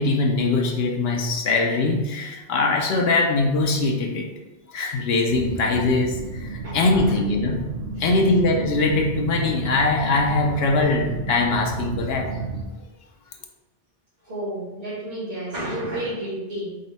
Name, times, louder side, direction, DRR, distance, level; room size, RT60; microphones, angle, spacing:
voice 1, 0.0-4.3 4.7-7.7 8.0-12.3, left 3 dB, 80° left, 2 dB, 0.8 m, -22 dB
sound 1, 5.3-12.6, right 3 dB, 65° right, 0.7 m, -32 dB
voice 2, 6.6-7.2 8.0-8.1 14.2-16.8, right 1 dB, 80° right, -10 dB, 1.7 m, -31 dB
5.1 x 2.1 x 4.0 m, 1.1 s
omnidirectional pair, 1.0 m